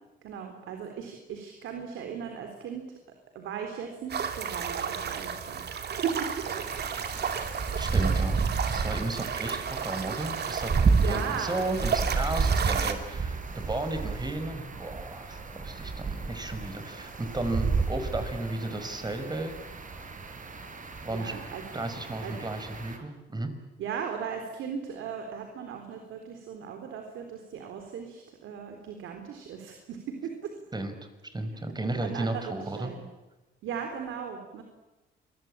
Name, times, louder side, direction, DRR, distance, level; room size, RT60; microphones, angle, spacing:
voice 1, 0.2-3.0 3.4-5.6 5.9-6.8 7.7-8.2 11.0-11.7 21.1-21.6 22.2-22.3 23.8-30.5 31.5-31.6 32.0-33.0 33.6-34.6, right 7 dB, 85° right, 4 dB, 3.9 m, -37 dB
sound 1, 4.1-12.9, right 7 dB, 55° right, 3.0 m, -33 dB
sound 2, 6.4-23.0, right 4 dB, 40° right, 4.8 m, -31 dB
voice 2, 7.8-8.4 8.7-19.5 21.0-21.4 21.7-23.5 30.7-31.0 31.3-32.9, right 2 dB, 20° right, 8 dB, 5.4 m, -34 dB
27.0 x 22.0 x 8.8 m, 1.1 s
cardioid pair, 90°, 20 cm